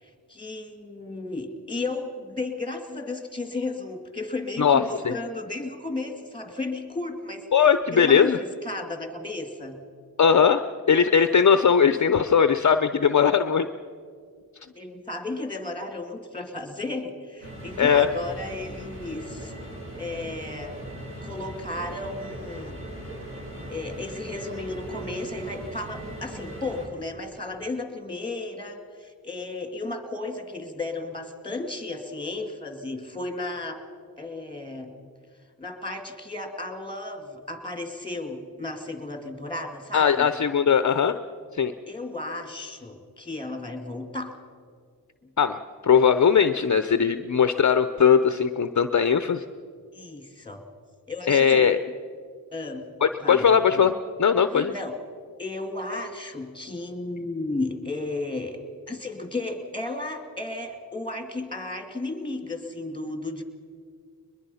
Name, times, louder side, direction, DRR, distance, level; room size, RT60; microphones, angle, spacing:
voice 1, 0.0-7.5 7.9-9.8 14.8-19.5 20.0-20.8 21.2-22.8 23.7-33.8 34.2-35.0 35.6-40.3 41.9-44.3 49.9-50.6 51.1-51.7 52.5-52.9 53.2-53.5 54.5-55.0 55.4-58.6 58.9-63.4, left 2 dB, 15° left, 6 dB, 2.5 m, -34 dB
voice 2, 4.6-5.1 7.5-8.4 10.2-13.7 17.8-18.1 39.9-41.1 41.5-41.7 45.4-49.4 51.3-51.8 53.0-53.9 54.2-54.7, left 7 dB, 50° left, 10 dB, 0.7 m, -19 dB
sound 1, 17.4-26.9, right 1 dB, 30° right, 6.3 m, -39 dB
22.0 x 21.5 x 5.7 m, 2.1 s
wide cardioid pair, 70°, 38 cm